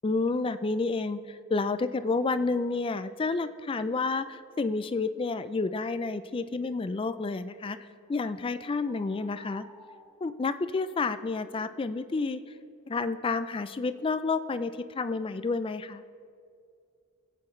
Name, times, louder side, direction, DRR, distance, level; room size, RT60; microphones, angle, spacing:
voice 1, 0.0-9.7 10.2-12.4 12.9-16.0, left 3 dB, 25° left, 12 dB, 0.3 m, -30 dB
sound 1, 8.1-8.3 8.8-10.9, right 1 dB, 5° left, 2.1 m, -54 dB
21.5 x 8.5 x 3.2 m, 2.4 s
head